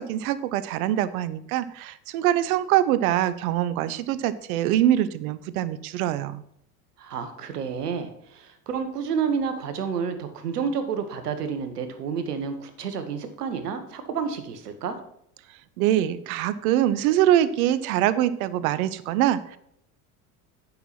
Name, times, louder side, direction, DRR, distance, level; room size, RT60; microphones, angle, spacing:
voice 1, 0.0-6.4 15.8-19.6, right 12 dB, 65° right, 15 dB, 0.8 m, -24 dB
voice 2, 7.0-15.0, right 6 dB, 80° right, 8 dB, 1.4 m, -30 dB
9.3 x 5.7 x 5.9 m, 0.73 s
hypercardioid pair, 80°, 46 cm